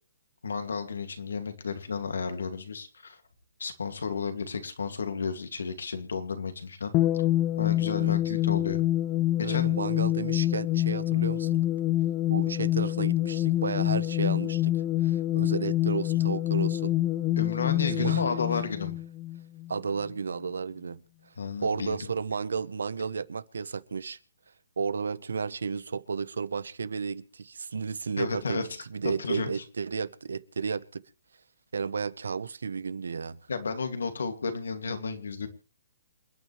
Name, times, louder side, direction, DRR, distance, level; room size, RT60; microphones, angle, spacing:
voice 1, 0.4-3.2 3.6-7.0 7.6-8.8 9.5-9.7 17.4-19.0 21.4-22.0 28.2-28.8 29.2-29.6 33.5-35.5, left 5 dB, 80° left, 2.5 m, -32 dB
sound 1, 6.9-19.8, left 14 dB, 30° left, 1.0 m, -26 dB
voice 2, 7.9-8.3 9.4-11.6 12.3-16.9 17.9-18.3 19.7-21.0 21.6-24.2 24.8-31.0 31.7-33.4, right 5 dB, 80° right, 1.0 m, -33 dB
28.0 x 9.4 x 3.3 m
hypercardioid pair, 140°, 0 cm